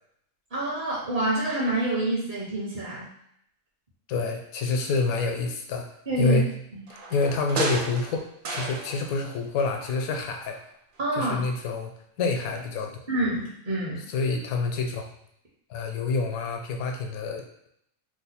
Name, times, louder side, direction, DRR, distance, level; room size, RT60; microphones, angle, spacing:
voice 1, 0.5-3.1 6.1-6.4 6.7-6.8 11.0-11.4 13.1-14.0, right 2 dB, 45° right, -6 dB, 0.8 m, -27 dB
voice 2, 4.1-5.9 6.2-6.6 7.1-8.2 8.5-10.6 11.2-11.9 12.2-12.9 14.1-15.1 15.7-17.4, left 3 dB, 85° left, 3 dB, 1.0 m, -27 dB
sound 1, 6.9-9.3 9.6-10.7 11.0-11.1, right 3 dB, 75° right, 0.4 m, -34 dB
2.9 x 2.1 x 4.1 m, 0.73 s
omnidirectional pair, 1.5 m